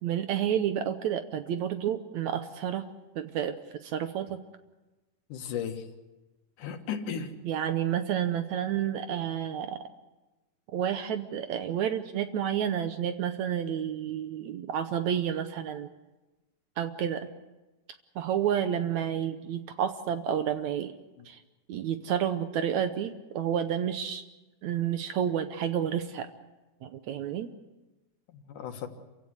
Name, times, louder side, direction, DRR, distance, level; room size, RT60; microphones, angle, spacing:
voice 1, 0.0-2.9 3.2-3.6 3.8-4.4 7.4-9.8 10.7-15.9 16.8-17.3 18.2-20.9 21.3-21.4 21.7-24.2 24.6-26.3 26.8-27.5, right 9 dB, 70° right, 9 dB, 2.0 m, -30 dB
voice 2, 5.3-5.9 6.6-7.4 21.2-21.3 28.3-28.9, left 7 dB, 70° left, 6 dB, 2.9 m, -36 dB
28.0 x 16.0 x 8.1 m, 1.1 s
omnidirectional pair, 3.9 m